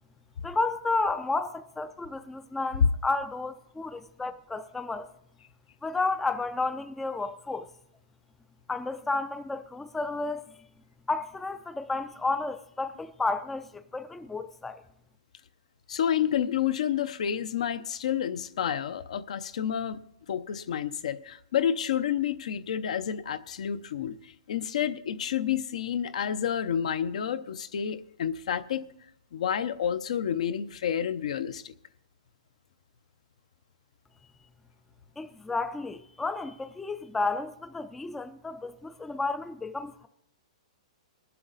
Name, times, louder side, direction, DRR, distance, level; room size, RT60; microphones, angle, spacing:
voice 1, 0.4-5.1 5.8-7.7 8.7-10.4 11.1-14.8 35.2-40.1, left 3 dB, 5° left, 0.4 m, -32 dB
voice 2, 15.9-20.0 20.3-28.8 29.3-31.7, left 9 dB, 65° left, 0.7 m, -29 dB
20.0 x 7.8 x 4.0 m
hypercardioid pair, 160°, 4 cm